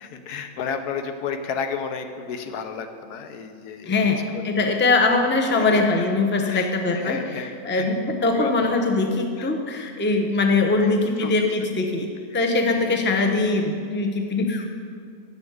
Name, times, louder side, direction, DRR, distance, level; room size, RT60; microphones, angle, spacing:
voice 1, 0.0-4.6 5.6-6.1 6.4-7.9 8.3-8.7 9.4-9.5 10.8-10.9 11.2-11.3 11.6-11.7 12.3-12.4 12.7-13.0, left 6 dB, 90° left, 7 dB, 1.3 m, -33 dB
voice 2, 3.9-14.6, left 3 dB, 10° left, 4 dB, 0.5 m, -22 dB
8.4 x 7.1 x 7.8 m, 2.3 s
omnidirectional pair, 1.6 m